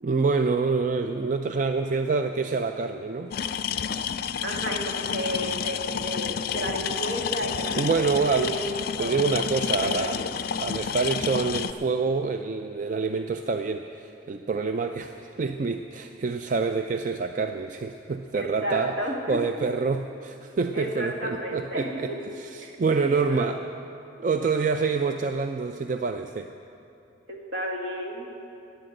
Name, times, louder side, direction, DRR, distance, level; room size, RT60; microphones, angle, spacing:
voice 1, 0.0-3.3 7.8-8.5 9.0-10.2 10.6-19.0 19.3-23.6 24.2-26.5, right 4 dB, 40° right, 6 dB, 0.3 m, -27 dB
sound 1, 3.3-11.7, left 8 dB, 50° left, 0.3 m, -30 dB
voice 2, 4.4-8.0 8.4-8.6 9.0-9.2 9.7-10.3 18.3-19.4 20.7-22.2 22.6-22.7 23.1-23.5 27.3-28.3, equal, 70° right, -1 dB, 2.0 m, -32 dB
11.5 x 10.0 x 7.7 m, 2.8 s
head